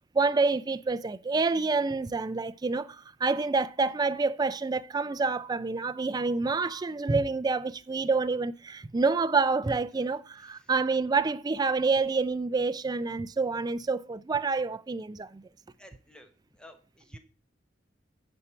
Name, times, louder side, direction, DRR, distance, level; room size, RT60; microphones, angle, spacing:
voice 1, 0.1-15.5, right 4 dB, 20° right, 0.3 m, -28 dB
voice 2, 10.4-10.7 15.6-17.2, left 1 dB, 5° left, 1.1 m, -54 dB
9.8 x 4.4 x 6.8 m
head